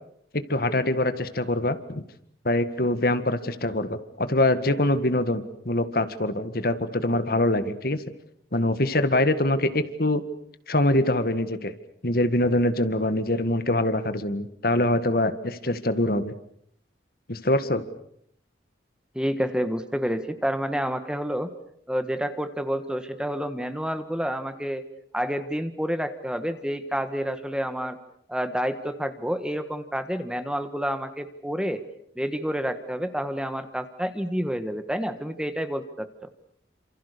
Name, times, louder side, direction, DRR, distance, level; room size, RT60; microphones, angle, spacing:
voice 1, 0.3-2.0 2.5-8.0 8.5-10.2 10.7-11.7 12.0-16.3 17.3-17.8, left 1 dB, 55° left, 11 dB, 1.8 m, -24 dB
voice 2, 19.1-21.5 21.9-24.8 25.1-28.0 28.3-31.8 32.2-36.1, equal, 5° right, 10 dB, 1.5 m, -29 dB
29.0 x 27.5 x 6.8 m, 0.69 s
head